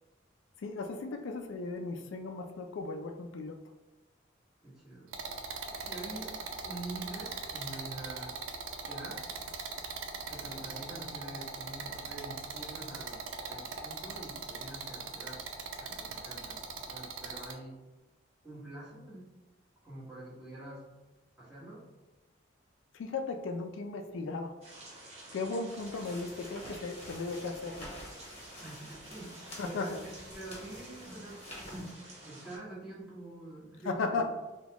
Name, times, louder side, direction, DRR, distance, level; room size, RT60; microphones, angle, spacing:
voice 1, 0.6-3.6 22.9-24.6 25.3-27.9 29.6-30.0 33.9-34.3, left 3 dB, 85° left, 5 dB, 0.4 m, -36 dB
voice 2, 4.6-5.1 5.7-8.4 8.8-9.3 10.3-13.2 13.5-15.4 15.8-17.8 18.4-19.3 19.8-20.8 21.4-21.8 28.6-31.4 31.7-31.9 32.2-34.2, right 2 dB, 5° right, -10 dB, 1.3 m, -46 dB
sound 1, 5.1-17.5, right 5 dB, 85° right, 0.4 m, -40 dB
sound 2, 24.6-32.6, right 1 dB, 35° right, 0.8 m, -49 dB
sound 3, 25.7-31.9, left 1 dB, 35° left, 1.1 m, -49 dB
4.0 x 2.2 x 2.9 m, 1.1 s
head